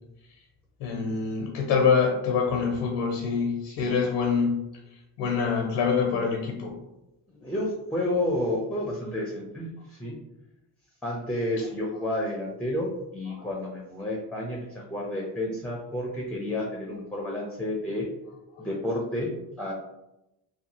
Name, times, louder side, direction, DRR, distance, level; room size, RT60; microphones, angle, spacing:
voice 1, 0.8-4.6 5.2-6.7 13.4-13.5 18.6-18.7, left 5 dB, 85° left, 1 dB, 0.6 m, -25 dB
voice 2, 7.3-10.2 11.0-18.1 18.6-19.7, left 1 dB, 5° left, -2 dB, 0.5 m, -30 dB
2.7 x 2.3 x 2.8 m, 0.93 s
supercardioid pair, 60°, 47 cm